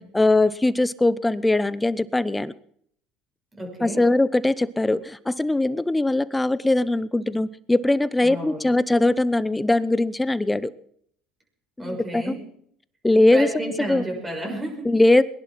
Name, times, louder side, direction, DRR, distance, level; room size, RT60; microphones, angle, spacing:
voice 1, 0.0-2.5 3.8-10.7 11.8-12.3 13.0-14.0 14.8-15.2, left 2 dB, 10° left, 17 dB, 0.8 m, -21 dB
voice 2, 3.5-4.0 8.2-8.7 11.8-12.4 13.3-14.9, right 1 dB, 20° right, 1 dB, 6.5 m, -31 dB
21.0 x 11.0 x 6.0 m, 0.65 s
supercardioid pair, 90°, 0 cm